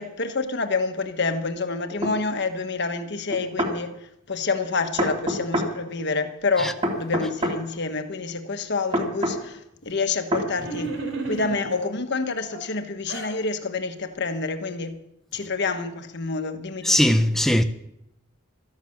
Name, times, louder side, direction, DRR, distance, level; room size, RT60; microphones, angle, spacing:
voice 1, 0.0-3.9 4.3-10.9 11.2-15.0 15.3-17.0, left 4 dB, 55° left, 1.4 m, -28 dB
sound 1, 2.0-2.2 3.3-3.8 5.0-5.7 6.8-7.6 8.9-9.4 10.3-10.5, equal, 30° right, 2.8 m, -25 dB
sound 2, 10.6-11.9 12.5-13.4, right 2 dB, 80° right, 4.0 m, -32 dB
voice 2, 16.8-17.6, left 1 dB, ahead, 0.7 m, -19 dB
14.0 x 12.0 x 7.1 m
head